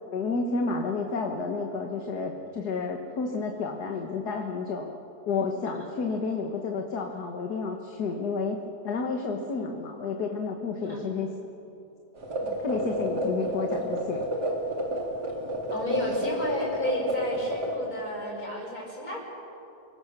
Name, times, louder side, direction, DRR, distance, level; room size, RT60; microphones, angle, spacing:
voice 1, 0.1-4.9 5.3-8.6 8.8-11.3 12.4-14.2, left 4 dB, 75° left, 3 dB, 2.0 m, -31 dB
voice 2, 10.8-11.2 15.7-19.2, left 1 dB, 60° left, -1 dB, 6.0 m, -33 dB
sound 1, 12.2-17.8, right 1 dB, 80° right, 3.7 m, -30 dB
28.5 x 23.0 x 6.8 m, 2.8 s
omnidirectional pair, 1.7 m